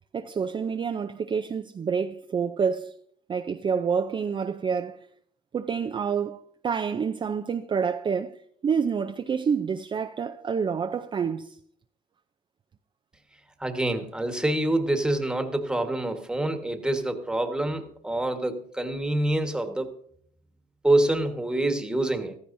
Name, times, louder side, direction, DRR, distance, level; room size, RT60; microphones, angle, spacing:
voice 1, 0.1-2.9 3.3-5.0 5.5-11.6, right 6 dB, 30° right, 0.5 m, -28 dB
voice 2, 13.6-19.9 20.8-22.4, right 1 dB, 5° right, 1.4 m, -26 dB
15.0 x 14.0 x 2.7 m
cardioid pair, 110°, 17 cm